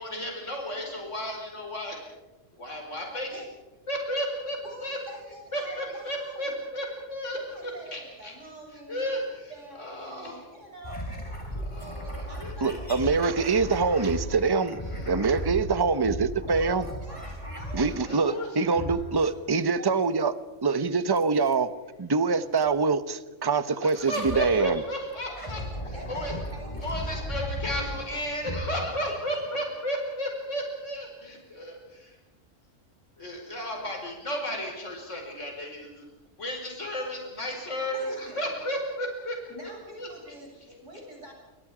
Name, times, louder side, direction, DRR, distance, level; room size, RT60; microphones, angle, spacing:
voice 1, 0.0-2.0 2.5-3.4 3.9-5.0 5.5-7.4 7.6-8.3 8.9-9.5 9.8-10.4 11.7-12.8 14.8-15.4 17.9-18.5 19.2-19.3 23.8-25.6 26.1-26.3 26.8-32.2 33.2-36.0 36.4-39.4 40.0-40.1, equal, 70° left, 1 dB, 5.3 m, -33 dB
voice 2, 4.6-6.6 7.3-9.0 9.5-13.5 16.4-20.1 25.4-26.9 27.4-27.5 29.1-29.2 37.9-38.6 39.5-41.3, right 1 dB, 70° right, 0 dB, 8.5 m, -46 dB
sound 1, 10.8-18.3 18.7-19.5 21.2-21.6 22.6-22.7 23.9-24.7 25.1-29.5, equal, 25° left, 5.0 m, -36 dB
voice 3, 12.6-14.8 15.1-16.8 17.7-20.3 20.6-21.7 22.0-24.8, right 4 dB, 20° right, 13 dB, 0.9 m, -24 dB
29.0 x 26.5 x 5.0 m, 1.0 s
omnidirectional pair, 1.3 m